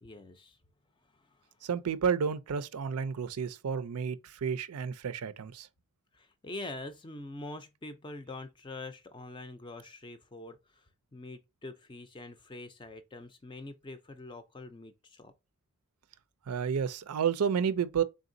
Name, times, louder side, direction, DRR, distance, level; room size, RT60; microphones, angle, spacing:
voice 1, 0.0-0.6 1.1-1.4 6.1-15.3, left 2 dB, 20° left, 0.4 m, -45 dB
voice 2, 1.6-5.7 16.5-18.0, right 7 dB, 90° right, 0.5 m, -31 dB
3.9 x 3.6 x 2.6 m
head